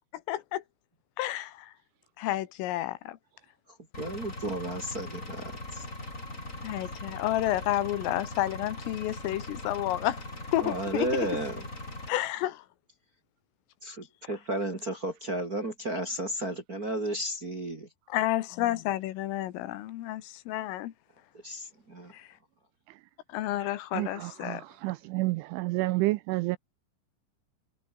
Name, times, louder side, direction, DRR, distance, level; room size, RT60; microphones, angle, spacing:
voice 1, 0.3-0.6 1.2-1.7 2.2-3.2 6.6-10.2 10.5-11.3 12.1-12.7 18.1-20.9 22.1-22.3 23.3-24.6, left 14 dB, 80° left, 4.0 m, -30 dB
Engine, 3.9-12.1, left 2 dB, 15° left, 6.4 m, -40 dB
voice 2, 4.0-5.9 10.6-11.6 13.8-17.9 21.4-22.1, right 1 dB, 30° right, 1.7 m, -33 dB
voice 3, 23.9-26.6, right 20 dB, 80° right, 2.9 m, -30 dB
omnidirectional pair, 6.0 m